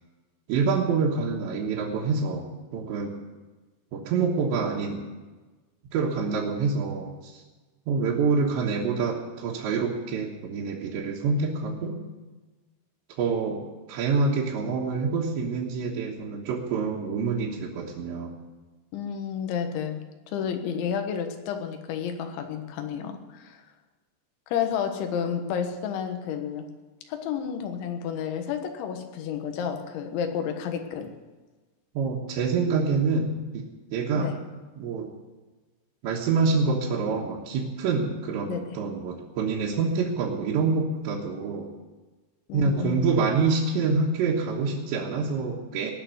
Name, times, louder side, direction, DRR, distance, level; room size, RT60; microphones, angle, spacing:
voice 1, 0.5-2.4 2.7-3.2 3.9-5.0 5.9-7.4 7.9-12.0 13.2-13.6 13.9-18.3 32.0-33.6 33.9-34.3 34.8-35.1 36.0-41.7 42.5-45.9, right 4 dB, 70° right, -4 dB, 3.4 m, -26 dB
voice 2, 18.9-20.0 20.3-23.6 24.5-26.7 27.1-31.1 34.2-34.4 38.5-38.6 42.5-43.1, left 8 dB, 75° left, 5 dB, 3.6 m, -31 dB
19.0 x 6.9 x 9.2 m, 1.3 s
omnidirectional pair, 5.7 m